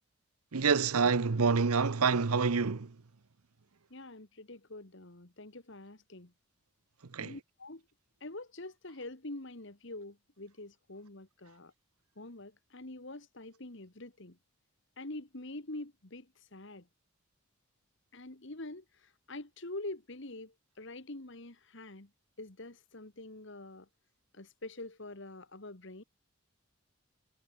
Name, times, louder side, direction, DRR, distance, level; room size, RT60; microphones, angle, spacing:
voice 1, 0.5-2.9 7.1-7.4, right 5 dB, 85° right, 0.8 m, -27 dB
voice 2, 3.9-6.3 7.2-7.8 8.2-11.7 12.2-14.4 15.0-16.9 18.1-18.8 19.3-22.1 22.4-23.9 24.3-26.0, left 2 dB, 55° left, 1.8 m, -45 dB
head